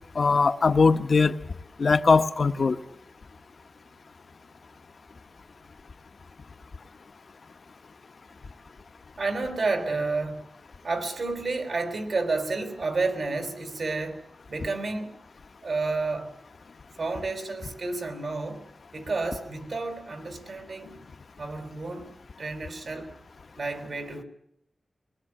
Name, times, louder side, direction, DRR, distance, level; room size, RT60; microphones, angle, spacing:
voice 1, 0.1-1.4 1.8-2.8, left 4 dB, 70° left, 9 dB, 1.1 m, -20 dB
voice 2, 9.2-10.4 10.8-15.1 15.6-16.3 17.0-18.6 18.9-21.0 21.4-23.1 23.6-24.2, right 3 dB, 75° right, 7 dB, 4.1 m, -30 dB
24.0 x 20.5 x 9.9 m, 0.77 s
wide cardioid pair, 100°, 0 cm